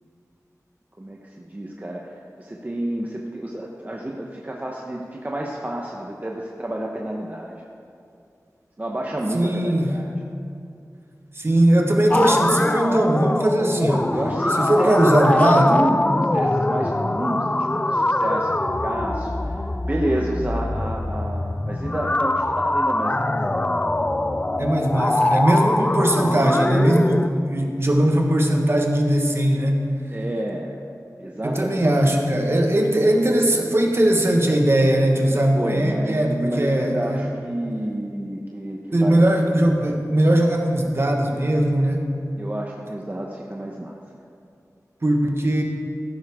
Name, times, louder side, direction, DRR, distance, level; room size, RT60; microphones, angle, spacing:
voice 1, 1.0-7.6 8.8-10.2 14.1-16.0 16.3-23.4 30.1-30.8 31.2-31.9 35.5-39.6 42.4-44.0, right 1 dB, 30° right, -1 dB, 1.0 m, -29 dB
voice 2, 9.3-10.0 11.3-14.2 14.6-15.7 24.6-29.9 31.4-37.2 38.9-42.0 45.0-45.6, right 1 dB, 45° right, 2 dB, 1.5 m, -19 dB
sound 1, 12.1-27.3, left 1 dB, 20° left, 0.4 m, -23 dB
15.0 x 11.5 x 3.7 m, 2.4 s
wide cardioid pair, 75°, 6 cm